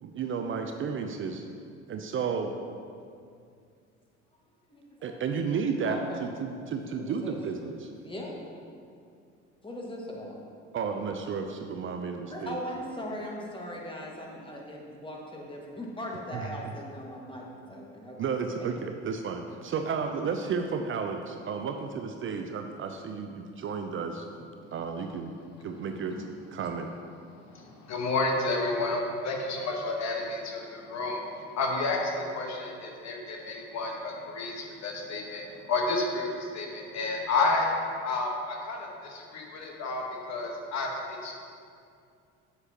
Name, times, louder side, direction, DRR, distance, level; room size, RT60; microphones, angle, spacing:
voice 1, 0.0-1.5 1.9-2.5 5.0-7.9 10.7-12.6 16.3-16.5 18.2-25.3 25.6-26.2 26.5-26.9, right 5 dB, 35° right, 5 dB, 0.5 m, -32 dB
voice 2, 4.7-5.2 5.9-6.3 7.0-7.4 8.0-8.4 9.6-10.4 12.3-18.2, equal, 15° left, -2 dB, 1.7 m, -39 dB
voice 3, 27.4-37.7 38.0-41.4, left 3 dB, 50° left, 0 dB, 1.3 m, -31 dB
8.2 x 7.7 x 2.9 m, 2.4 s
hypercardioid pair, 65°, 35 cm